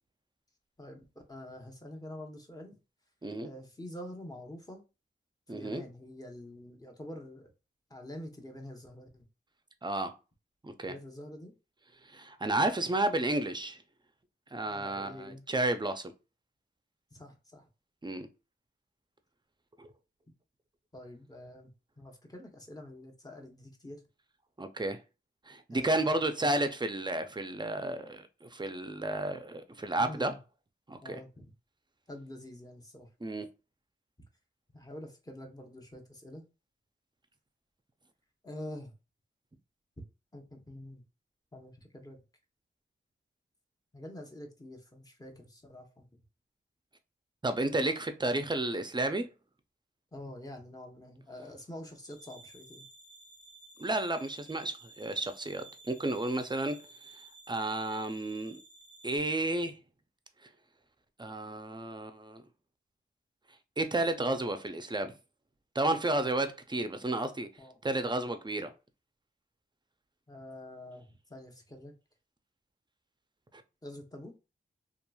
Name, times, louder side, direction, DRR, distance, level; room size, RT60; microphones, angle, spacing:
voice 1, 0.8-2.8 3.4-4.8 5.5-7.5 7.9-9.3 10.8-11.5 14.7-15.4 17.1-17.7 20.9-21.7 22.0-24.0 25.7-26.2 30.0-30.4 31.0-31.5 32.1-33.1 34.7-36.4 38.4-38.9 40.3-41.0 41.5-42.2 43.9-46.1 50.1-52.9 67.6-67.8 70.3-71.9 73.8-74.3, left 1 dB, 15° left, 0.8 m, -46 dB
voice 2, 5.5-5.8 9.8-10.1 10.6-10.9 12.1-13.8 14.5-16.1 18.0-18.3 19.8-19.9 24.6-25.0 25.5-30.3 30.9-31.2 33.2-33.5 47.4-49.3 53.8-56.8 57.5-58.6 59.0-59.8 61.2-62.4 63.8-65.1 65.7-67.5 67.8-68.7, right 2 dB, 20° right, 0.5 m, -32 dB
sound 1, 52.0-59.2, right 2 dB, 90° left, 1.1 m, -54 dB
2.9 x 2.4 x 2.3 m
cardioid pair, 45°, 21 cm